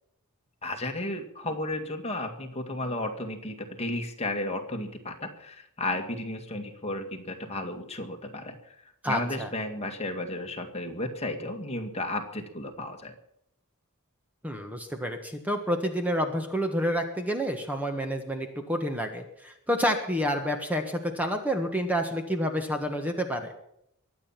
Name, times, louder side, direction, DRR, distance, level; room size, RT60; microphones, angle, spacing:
voice 1, 0.6-8.6 9.1-13.1, left 1 dB, 30° left, 4 dB, 2.1 m, -33 dB
voice 2, 9.0-9.5 14.4-23.5, equal, 5° right, 5 dB, 1.5 m, -29 dB
23.0 x 8.8 x 5.9 m, 0.75 s
head